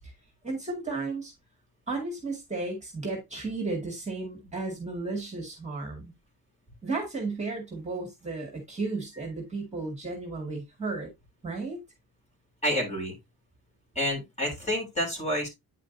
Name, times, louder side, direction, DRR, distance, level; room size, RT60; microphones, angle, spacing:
voice 1, 0.4-1.3 1.9-6.1 6.8-11.1 11.4-11.8, right 3 dB, 20° right, 1.9 m, -34 dB
voice 2, 12.6-13.2 13.9-15.5, equal, 20° left, 3.2 m, -29 dB
9.0 x 5.0 x 2.7 m
wide cardioid pair, 175°, 35 cm